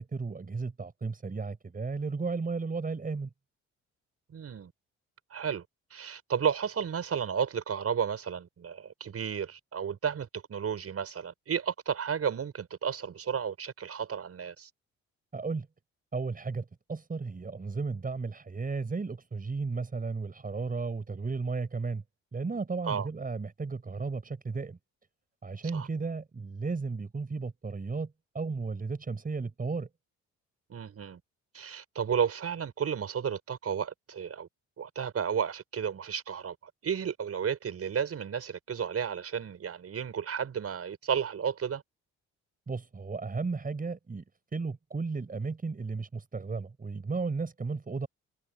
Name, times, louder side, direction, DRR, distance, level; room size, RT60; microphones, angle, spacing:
voice 1, 0.0-3.3 15.3-15.7 16.1-22.0 22.3-24.8 25.4-29.9 42.7-44.2 44.5-48.1, right 4 dB, 30° right, 5.6 m, -34 dB
voice 2, 4.3-4.7 5.3-5.6 5.9-14.7 22.8-23.1 25.7-25.9 30.7-31.2 31.5-34.5 34.8-41.8, right 7 dB, 50° right, 6.8 m, -32 dB
cardioid pair, 90°, 30 cm